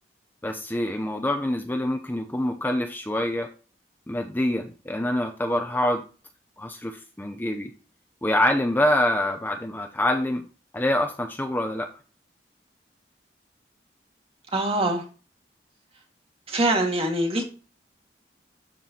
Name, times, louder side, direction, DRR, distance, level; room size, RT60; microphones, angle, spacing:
voice 1, 0.4-3.5 4.1-6.0 6.6-7.7 8.2-10.4 10.7-11.9, left 1 dB, 10° left, 4 dB, 0.7 m, -25 dB
voice 2, 14.5-15.0 16.5-17.4, right 1 dB, 35° right, 2 dB, 2.0 m, -23 dB
12.5 x 4.7 x 2.9 m, 0.36 s
head